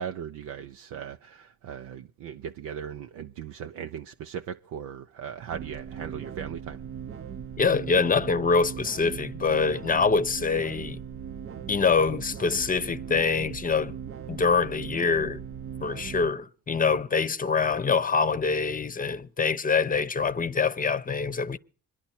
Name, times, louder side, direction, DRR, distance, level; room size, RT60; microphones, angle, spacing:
voice 1, 0.0-6.8, right 8 dB, 80° right, 0.6 m, -38 dB
sound 1, 5.5-16.3, right 8 dB, 45° right, 0.7 m, -39 dB
voice 2, 7.6-11.0 11.7-13.9 14.3-15.4 15.8-21.6, left 5 dB, 30° left, 0.8 m, -25 dB
25.5 x 11.0 x 4.4 m
cardioid pair, 90°, 30 cm